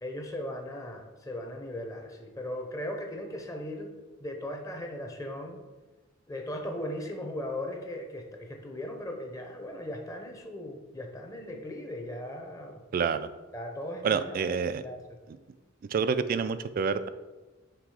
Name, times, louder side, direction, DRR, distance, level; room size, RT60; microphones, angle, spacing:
voice 1, 0.0-3.9 4.2-5.6 6.3-12.7 13.5-15.0, left 1 dB, 15° left, 3 dB, 0.7 m, -38 dB
voice 2, 12.9-13.3 14.0-14.8 15.9-17.1, right 6 dB, 45° right, 13 dB, 0.3 m, -28 dB
6.0 x 3.6 x 4.8 m, 1.2 s
head